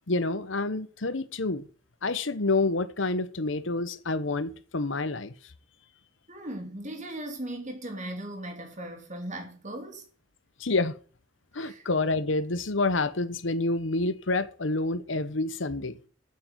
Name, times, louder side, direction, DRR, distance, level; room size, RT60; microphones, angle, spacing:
voice 1, 0.1-1.7 2.0-5.3 10.6-10.9 11.5-16.0, left 2 dB, 70° left, 1.1 m, -28 dB
voice 2, 6.3-10.0 11.5-11.9, right 1 dB, 40° right, 3.1 m, -38 dB
8.7 x 8.4 x 9.3 m
head